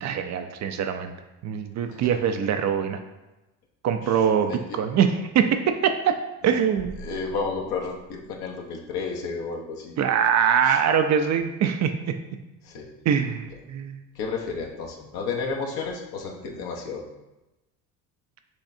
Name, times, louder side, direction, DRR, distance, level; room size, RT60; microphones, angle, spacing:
voice 1, 0.0-1.1 1.4-3.0 3.8-6.1 6.4-7.0 10.0-12.1 13.1-14.0, right 7 dB, 40° right, 7 dB, 0.5 m, -23 dB
voice 2, 4.1-4.8 6.4-6.6 7.0-10.0 10.6-10.8 12.6-12.9 14.1-17.0, left 4 dB, 60° left, 1 dB, 1.0 m, -32 dB
sound 1, 6.8-8.4, right 3 dB, 85° right, 1.3 m, -43 dB
6.3 x 3.1 x 2.7 m, 1.0 s
hypercardioid pair, 70°, 43 cm